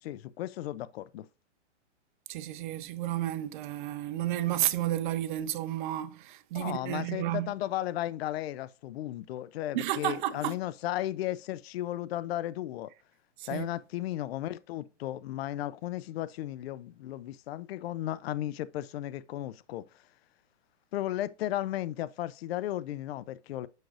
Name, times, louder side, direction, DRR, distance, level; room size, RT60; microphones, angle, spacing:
voice 1, 0.0-1.3 6.5-12.9 13.5-19.8 20.9-23.7, left 13 dB, 60° left, 0.5 m, -35 dB
voice 2, 2.3-7.5 9.7-10.6 13.4-13.7, right 13 dB, 45° right, 0.7 m, -32 dB
6.4 x 6.3 x 2.4 m
hypercardioid pair, 130°, 36 cm